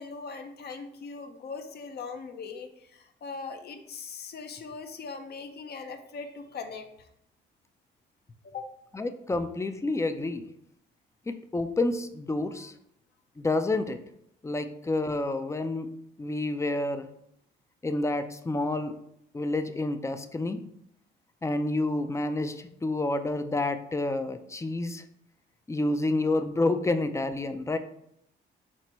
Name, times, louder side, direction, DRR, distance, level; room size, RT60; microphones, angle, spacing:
voice 1, 0.0-7.1 8.4-8.7 12.5-12.7, left 5 dB, 55° left, 6 dB, 0.6 m, -40 dB
voice 2, 8.9-10.5 11.3-12.7 13.4-14.0 14.4-15.9 16.2-17.1 17.8-18.9 19.3-20.6 21.4-25.0 25.7-27.8, left 2 dB, 15° left, 9 dB, 0.4 m, -29 dB
5.9 x 2.1 x 4.1 m, 0.74 s
cardioid pair, 90°, 20 cm